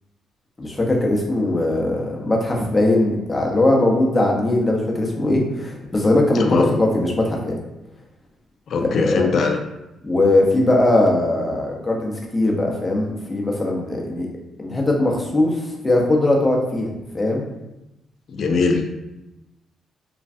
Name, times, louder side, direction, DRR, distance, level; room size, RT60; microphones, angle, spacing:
voice 1, 0.6-7.6 8.8-9.4 10.0-14.3 14.6-17.5, left 1 dB, 20° left, -1 dB, 0.6 m, -20 dB
voice 2, 6.4-6.7 8.7-9.6 18.3-18.9, left 4 dB, 60° left, 3 dB, 0.3 m, -20 dB
3.1 x 2.3 x 2.5 m, 0.94 s
cardioid pair, 100°, 0 cm